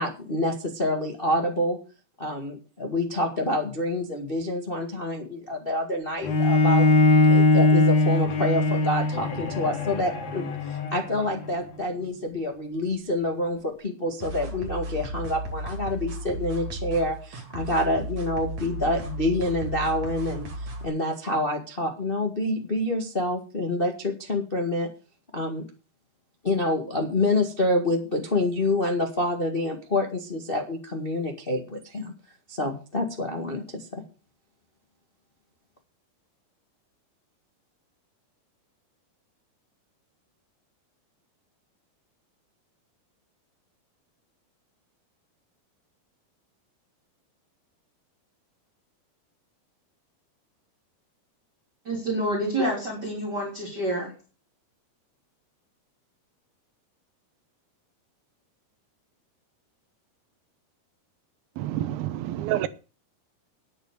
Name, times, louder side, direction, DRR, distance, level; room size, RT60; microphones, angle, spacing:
voice 1, 0.0-1.8 2.2-6.9 7.3-10.5 10.9-20.5 20.8-24.9 25.3-25.6 26.4-32.1 32.5-34.0, left 1 dB, 30° left, 1.0 m, -27 dB
Bowed string instrument, 6.2-11.5, left 2 dB, 70° left, 4.1 m, -21 dB
sound 1, 14.2-20.9, right 1 dB, 50° right, 3.6 m, -35 dB
voice 2, 51.9-54.1, right 1 dB, 25° right, 3.7 m, -28 dB
voice 3, 61.6-62.7, right 13 dB, 80° right, 2.6 m, -28 dB
11.0 x 8.5 x 6.7 m
omnidirectional pair, 4.4 m